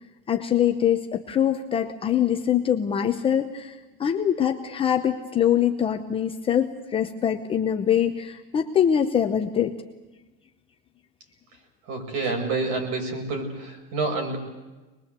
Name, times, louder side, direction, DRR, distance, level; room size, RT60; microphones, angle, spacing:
voice 1, 0.3-9.7, left 9 dB, 15° left, 4 dB, 0.8 m, -23 dB
voice 2, 11.9-14.4, right 3 dB, 45° right, 3 dB, 6.4 m, -28 dB
25.0 x 21.0 x 8.2 m, 1.2 s
cardioid pair, 180°, 33 cm